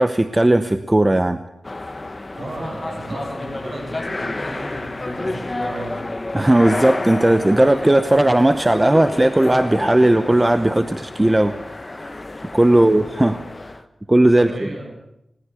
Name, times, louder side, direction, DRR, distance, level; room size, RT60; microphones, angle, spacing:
voice 1, 0.0-1.4 6.3-11.5 11.8-12.1 12.5-13.4 14.1-14.7, right 1 dB, 15° right, 10 dB, 0.8 m, -16 dB
sound 1, 1.6-13.8, left 2 dB, 25° left, 1.1 m, -30 dB
voice 2, 2.3-6.1 6.7-7.1 12.7-13.1 14.4-15.0, right 1 dB, 45° right, 2 dB, 7.4 m, -35 dB
20.5 x 18.5 x 8.4 m, 0.84 s
wide cardioid pair, 125°, 0 cm